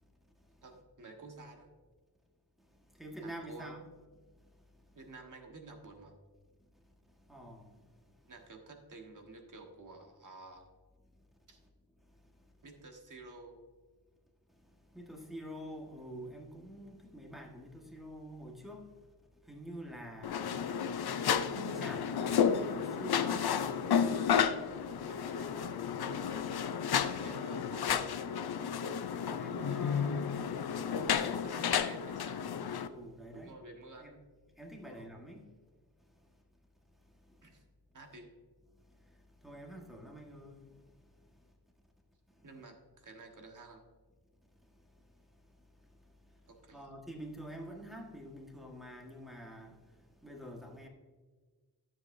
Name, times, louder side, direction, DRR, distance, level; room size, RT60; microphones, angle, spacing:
voice 1, 0.6-1.7 3.2-3.7 4.9-6.2 8.3-10.7 11.5-11.6 12.6-13.6 17.0-17.1 25.1-25.5 26.9-28.1 31.3-32.4 33.3-34.2 34.9-35.1 37.4-37.6 37.9-38.3 42.4-43.8 46.5-46.9, right 3 dB, 50° right, 1.4 m, -51 dB
voice 2, 3.0-3.8 7.3-7.7 14.9-18.8 19.5-20.6 21.5-23.5 29.3-30.3 30.9-31.3 32.9-33.5 34.0-34.2 34.6-35.4 39.4-40.7 46.7-49.7 50.2-50.9, right 1 dB, ahead, 1.5 m, -46 dB
sound 1, 20.2-32.9, left 7 dB, 70° left, 0.6 m, -32 dB
13.0 x 7.4 x 2.6 m
wide cardioid pair, 150°, 39 cm